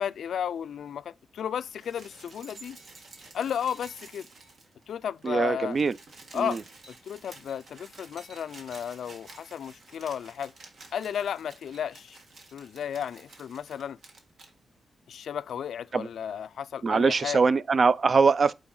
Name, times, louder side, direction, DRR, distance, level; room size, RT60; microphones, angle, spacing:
voice 1, 0.0-2.8 3.3-4.3 4.9-5.8 6.3-6.6 6.9-10.5 10.9-12.2 12.5-14.0 15.1-17.4, left 8 dB, 90° left, 0.3 m, -33 dB
sound 1, 1.6-4.9 5.2-5.3 5.5-14.5 15.5-15.6, right 3 dB, 70° right, 1.5 m, -51 dB
voice 2, 5.2-5.9 6.3-6.6 15.9-16.1 16.8-18.5, right 4 dB, 50° right, 0.4 m, -22 dB
8.7 x 4.0 x 3.8 m
cardioid pair, 90°, 0 cm